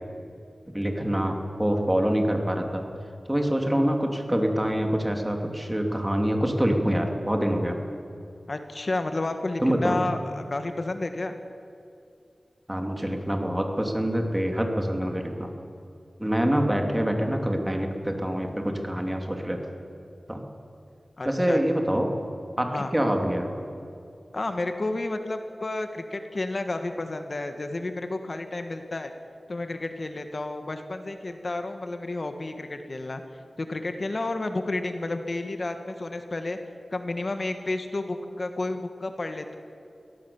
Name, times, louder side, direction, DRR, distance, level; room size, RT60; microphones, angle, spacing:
voice 1, 0.7-2.8 3.3-7.8 9.6-10.0 12.7-15.5 16.2-19.6 20.3-20.5 21.2-22.1 22.6-23.5, equal, 15° right, 3 dB, 2.9 m, -25 dB
voice 2, 8.5-11.3 21.2-21.6 22.6-22.9 24.3-29.1 29.5-36.6 36.9-39.5, left 2 dB, 50° left, 7 dB, 1.5 m, -31 dB
23.5 x 17.5 x 7.1 m, 2.6 s
wide cardioid pair, 75°, 0 cm